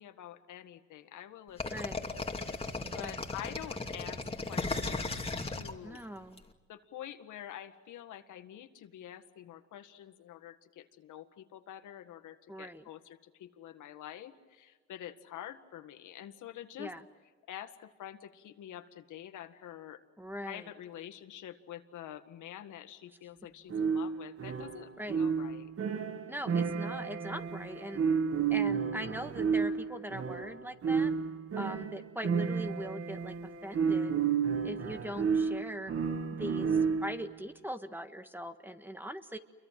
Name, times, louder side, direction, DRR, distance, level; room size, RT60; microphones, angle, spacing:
voice 1, 0.0-2.2 2.9-4.2 4.5-5.0 5.5-6.0 6.7-16.9 17.5-20.0 20.4-25.7, left 11 dB, 80° left, 8 dB, 1.9 m, -47 dB
sound 1, 1.6-6.4, left 3 dB, 20° left, 2.6 m, -36 dB
voice 2, 1.7-2.0 3.0-3.2 5.8-6.4 12.5-12.9 16.8-17.0 20.2-20.7 25.0-25.2 26.3-28.0 28.5-31.1 31.6-33.3 33.6-34.1 34.6-35.9 36.3-39.4, equal, 5° right, 8 dB, 1.6 m, -41 dB
sound 2, 23.7-37.3, right 6 dB, 50° right, 1.9 m, -31 dB
29.0 x 23.0 x 7.7 m, 1.4 s
cardioid pair, 90°, 30 cm